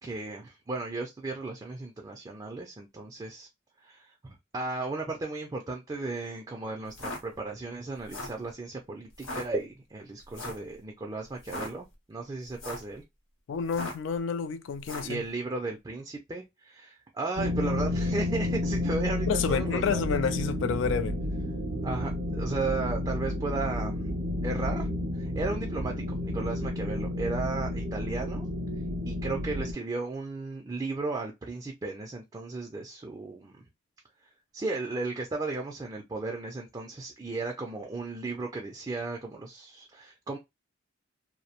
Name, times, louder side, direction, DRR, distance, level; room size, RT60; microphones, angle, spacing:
voice 1, 0.0-3.5 3.8-13.0 15.0-20.2 21.8-24.1 24.4-24.9 25.1-28.5 29.1-33.6 34.5-40.4, right 3 dB, 20° right, 0.3 m, -35 dB
sound 1, 6.8-7.2 8.0-8.4 9.1-9.4 10.3-10.7 11.3-11.7 12.5-12.9 13.6-14.1 14.8-15.2, left 1 dB, 90° left, 0.8 m, -38 dB
voice 2, 13.5-15.2 19.3-21.2, left 6 dB, 65° left, 0.3 m, -29 dB
sound 2, 17.4-29.7, left 1 dB, 75° right, 0.5 m, -31 dB
2.5 x 2.0 x 2.8 m
head